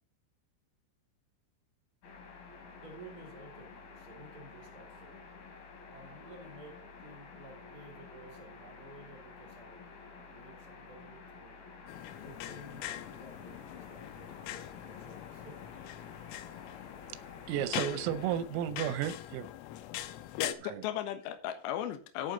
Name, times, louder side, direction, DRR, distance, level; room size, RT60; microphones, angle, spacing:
sound 1, 2.0-18.4, left 4 dB, 55° left, 4.0 m, -51 dB
voice 1, 2.8-5.4 5.8-11.6 12.2-15.7, right 2 dB, 25° right, 2.7 m, -53 dB
sound 2, 11.9-20.5, left 13 dB, 90° left, 3.5 m, -42 dB
voice 2, 17.5-19.5 20.6-20.9, right 11 dB, 85° right, 3.4 m, -33 dB
voice 3, 20.4-22.3, left 11 dB, 70° left, 3.1 m, -36 dB
10.5 x 9.7 x 3.9 m
omnidirectional pair, 5.9 m